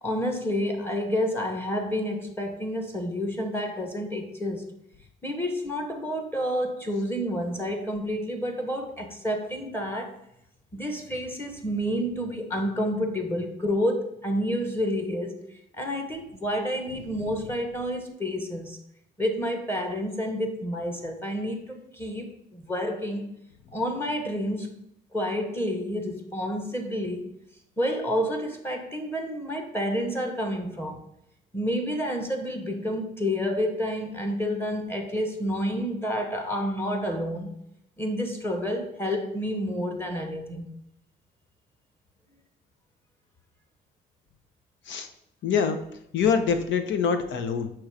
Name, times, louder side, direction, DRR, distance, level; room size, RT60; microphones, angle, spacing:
voice 1, 0.0-4.7 5.2-10.1 10.7-15.4 15.8-18.8 19.2-23.3 23.7-24.7 25.1-27.2 27.8-31.0 31.5-37.5 38.0-40.7, equal, 10° left, 2 dB, 1.2 m, -29 dB
voice 2, 45.4-45.8 46.1-47.7, left 6 dB, 70° left, 8 dB, 0.8 m, -25 dB
6.2 x 3.1 x 4.9 m, 0.76 s
cardioid pair, 90°, 20 cm